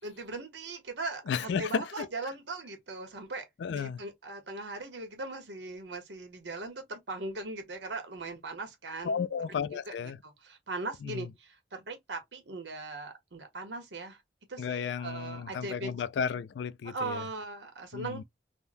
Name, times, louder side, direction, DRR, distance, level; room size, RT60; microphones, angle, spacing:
voice 1, 0.0-9.2 9.9-14.2 14.5-15.9 16.8-18.2, right 3 dB, 85° right, 1.1 m, -39 dB
voice 2, 1.3-2.1 3.6-4.0 9.0-10.2 11.0-11.3 14.6-17.2 17.9-18.2, left 6 dB, 85° left, 0.3 m, -33 dB
3.6 x 2.2 x 2.5 m
head